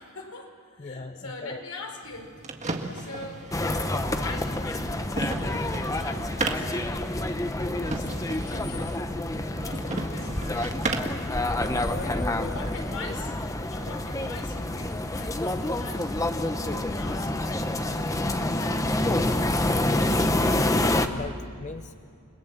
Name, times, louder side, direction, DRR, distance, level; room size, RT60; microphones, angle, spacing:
voice 1, 0.0-2.5 2.9-7.2 7.5-8.9 9.6-10.9 12.4-13.3 13.7-18.8, left 2 dB, 80° left, 3 dB, 4.7 m, -43 dB
voice 2, 0.8-1.6 11.6-12.6 19.9-22.0, left 3 dB, 35° left, 9 dB, 0.6 m, -39 dB
sound 1, 2.0-11.2, right 2 dB, 30° right, 1.8 m, -35 dB
sound 2, 3.5-21.1, left 1 dB, 15° left, 1.0 m, -27 dB
29.5 x 21.5 x 7.3 m, 2.4 s
head